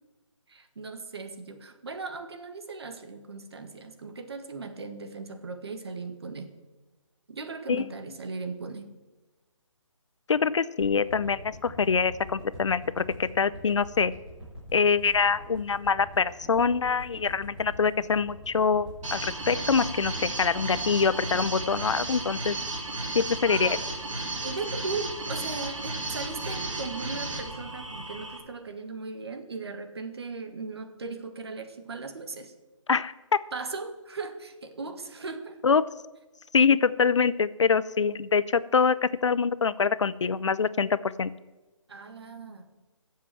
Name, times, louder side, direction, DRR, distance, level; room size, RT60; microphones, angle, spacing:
voice 1, 0.5-6.5 7.3-8.9 23.5-23.8 24.4-32.5 33.5-35.6 41.9-42.7, right 4 dB, 55° right, 7 dB, 1.7 m, -38 dB
voice 2, 10.3-14.1 14.7-22.6 23.1-23.8 32.9-33.4 35.6-35.8 36.5-41.3, left 5 dB, 65° left, 17 dB, 0.6 m, -25 dB
sound 1, 10.8-23.1 23.5-23.6, equal, 5° right, 3.9 m, -45 dB
sound 2, 19.0-28.4, right 2 dB, 70° right, 4.2 m, -34 dB
15.5 x 7.5 x 7.7 m, 1.2 s
hypercardioid pair, 170°, 17 cm